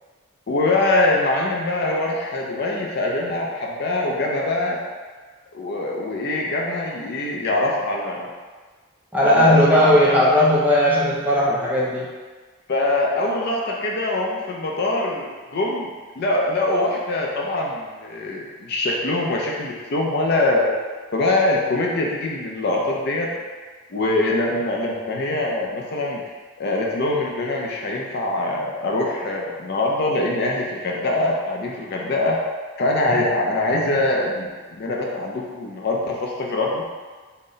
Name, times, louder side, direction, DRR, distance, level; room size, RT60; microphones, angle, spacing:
voice 1, 0.5-4.8 5.5-8.3 9.2-10.2 12.7-20.7 21.1-23.3 23.9-26.2 26.6-32.4 32.8-36.8, left 2 dB, 50° left, -2 dB, 0.4 m, -23 dB
voice 2, 9.1-12.1, left 1 dB, 10° right, -6 dB, 0.4 m, -17 dB
3.8 x 2.1 x 3.8 m, 1.4 s
head